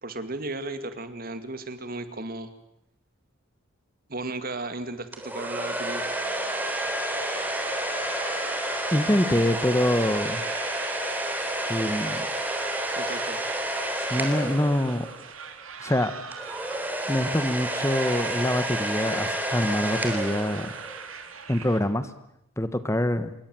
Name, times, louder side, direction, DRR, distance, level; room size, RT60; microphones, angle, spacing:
voice 1, 0.0-2.5 4.1-6.0 13.0-13.4, right 2 dB, 45° right, 10 dB, 2.3 m, -35 dB
sound 1, 5.1-15.2 16.3-21.0, right 1 dB, 10° right, 3.5 m, -30 dB
sound 2, 7.3-21.8, right 6 dB, 80° right, 2.9 m, -41 dB
voice 2, 8.9-10.4 11.7-12.3 14.1-15.1 15.8-16.1 17.1-20.7 21.5-22.1 22.6-23.3, left 1 dB, 15° left, 12 dB, 1.2 m, -25 dB
27.5 x 23.0 x 7.8 m, 0.78 s
head